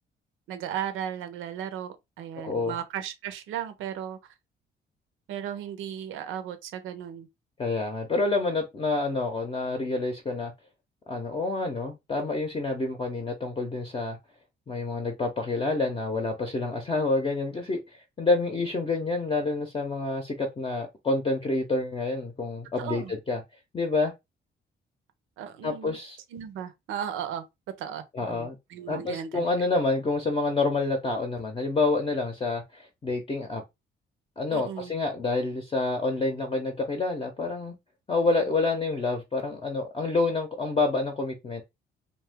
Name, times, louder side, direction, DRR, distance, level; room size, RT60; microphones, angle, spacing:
voice 1, 0.5-4.2 5.3-7.3 22.8-23.1 25.4-26.0 26.3-27.5 27.8-29.5 34.5-34.9 38.3-38.5, right 9 dB, 90° right, 0.6 m, -36 dB
voice 2, 2.4-2.7 7.6-10.5 11.1-14.2 14.7-23.4 23.7-24.1 25.6-26.2 28.1-28.6 28.9-33.6 34.4-37.8 38.1-41.6, left 3 dB, 25° left, 0.7 m, -28 dB
2.6 x 2.2 x 3.4 m
cardioid pair, 90°, 20 cm